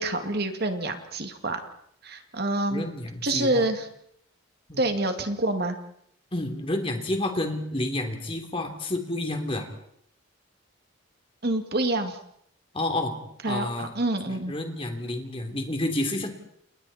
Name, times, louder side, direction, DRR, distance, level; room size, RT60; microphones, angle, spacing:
voice 1, 0.0-1.6 2.0-2.9 3.2-3.9 4.8-5.8 11.4-12.2 13.4-14.5, right 2 dB, 45° right, 6 dB, 2.3 m, -27 dB
voice 2, 2.7-3.7 4.7-4.8 6.3-9.7 12.7-13.2 13.4-13.9 14.2-16.3, left 1 dB, 25° left, 4 dB, 3.3 m, -30 dB
30.0 x 30.0 x 4.3 m, 0.69 s
head